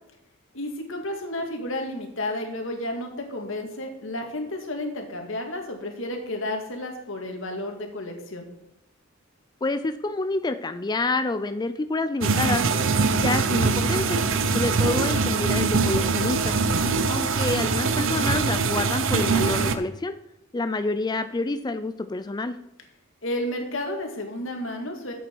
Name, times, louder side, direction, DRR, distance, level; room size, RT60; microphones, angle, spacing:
voice 1, 0.5-8.5 16.8-16.9 23.2-25.1, left 1 dB, 65° left, 3 dB, 2.1 m, -32 dB
voice 2, 9.6-12.6 13.1-14.2 14.5-16.6 17.1-20.1 20.5-22.6, left 2 dB, 20° left, 10 dB, 0.4 m, -27 dB
sound 1, 12.2-19.7, right 4 dB, 65° right, 0.8 m, -23 dB
11.5 x 8.2 x 4.7 m, 0.82 s
head